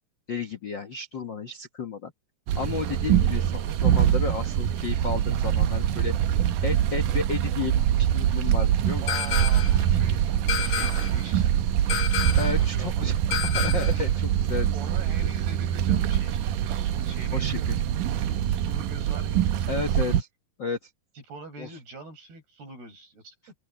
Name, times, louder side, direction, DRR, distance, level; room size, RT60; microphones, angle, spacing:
voice 1, 0.3-2.1 2.5-6.3 6.6-9.0 12.4-13.2 13.5-14.7 17.3-17.8 19.7-20.3 20.6-20.9 21.6-21.7, left 5 dB, 90° left, 1.0 m, -32 dB
sound 1, 2.5-20.2, right 10 dB, 70° right, 2.2 m, -24 dB
voice 2, 9.0-13.1 13.9-14.3 14.7-20.0 21.2-23.4, right 3 dB, 90° right, 9.5 m, -44 dB
sound 2, 9.1-9.8 10.5-11.2 11.9-12.6 13.3-14.0, left 8 dB, 65° left, 1.7 m, -30 dB
open air
omnidirectional pair, 4.4 m